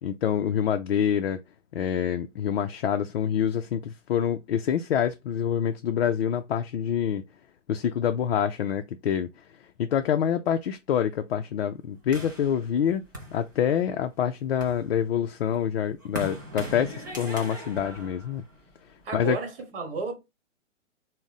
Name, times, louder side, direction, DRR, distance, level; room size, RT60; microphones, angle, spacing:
voice 1, 0.0-1.4 1.7-7.2 7.7-9.3 9.8-13.0 13.3-18.4 19.1-19.4, left 9 dB, 55° left, 0.4 m, -26 dB
sound 1, 12.1-13.9 14.4-19.0, equal, 20° right, 0.3 m, -40 dB
voice 2, 19.0-20.2, right 3 dB, 50° right, 1.2 m, -32 dB
3.5 x 2.1 x 4.0 m
figure-of-eight pair, 130°, 37 cm